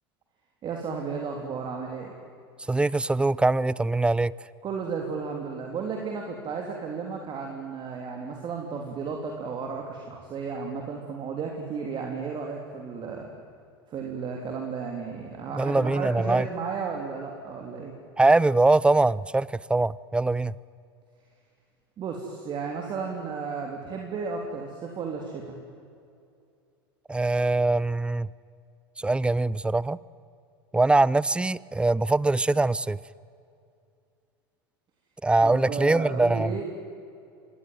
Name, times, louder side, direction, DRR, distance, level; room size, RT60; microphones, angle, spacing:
voice 1, 0.6-2.1 4.6-13.3 13.9-17.9 22.0-25.6 35.4-36.6, right 5 dB, 35° right, 1 dB, 3.4 m, -33 dB
voice 2, 2.7-4.3 15.5-16.5 18.2-20.5 27.1-28.3 29.0-30.0 30.7-33.0 35.2-36.6, right 2 dB, 10° right, 22 dB, 0.5 m, -22 dB
25.5 x 19.0 x 9.4 m, 2.4 s
hypercardioid pair, 95°, 13 cm